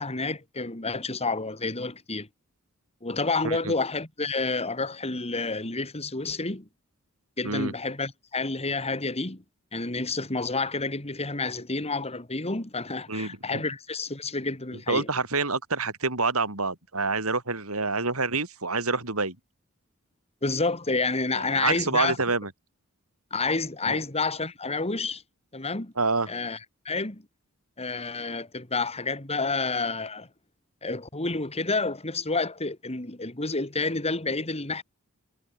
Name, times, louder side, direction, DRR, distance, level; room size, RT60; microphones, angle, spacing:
voice 1, 0.0-2.3 3.0-6.7 7.4-9.4 9.7-15.1 20.4-22.2 23.3-25.2 25.5-25.9 26.3-26.6 26.8-27.2 27.8-30.3 30.8-34.8, left 3 dB, 30° left, 2.9 m, -29 dB
voice 2, 3.4-3.8 7.4-7.7 13.1-13.6 14.9-19.4 21.3-22.5 23.9-24.0 26.0-26.3, right 3 dB, 70° right, 5.8 m, -27 dB
head